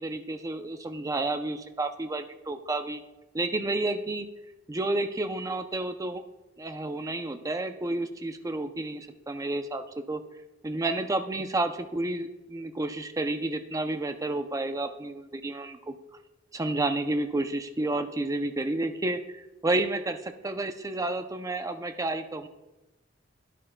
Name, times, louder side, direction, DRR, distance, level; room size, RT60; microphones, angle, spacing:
voice 1, 0.0-3.0 3.3-4.3 4.7-6.2 6.6-10.2 10.6-15.9 16.5-22.5, right 2 dB, 15° right, 8 dB, 0.5 m, -30 dB
12.0 x 10.0 x 2.2 m, 1.1 s
head